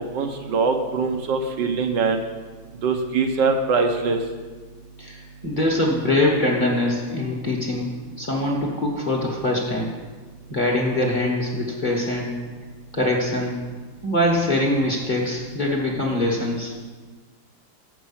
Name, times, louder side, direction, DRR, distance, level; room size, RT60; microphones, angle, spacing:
voice 1, 0.0-2.2 2.8-4.2, right 4 dB, 70° right, 4 dB, 1.4 m, -22 dB
voice 2, 5.0-7.9 8.2-9.9 10.5-12.3 12.9-13.6 14.0-16.7, left 1 dB, 30° left, -2 dB, 1.2 m, -23 dB
7.4 x 6.1 x 7.1 m, 1.4 s
omnidirectional pair, 2.1 m